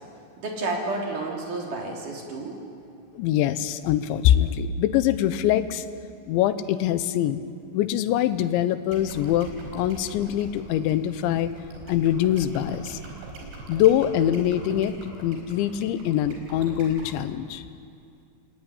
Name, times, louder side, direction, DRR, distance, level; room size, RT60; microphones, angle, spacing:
voice 1, 0.4-2.6, right 2 dB, 45° right, -1 dB, 4.5 m, -31 dB
voice 2, 3.1-5.8 6.3-7.4 7.7-11.5 11.9-13.0 13.7-17.6, left 11 dB, 75° left, 12 dB, 3.0 m, -23 dB
sound 1, 8.9-17.1, right 2 dB, 65° right, 6.9 m, -42 dB
28.0 x 20.5 x 10.0 m, 2.4 s
omnidirectional pair, 5.7 m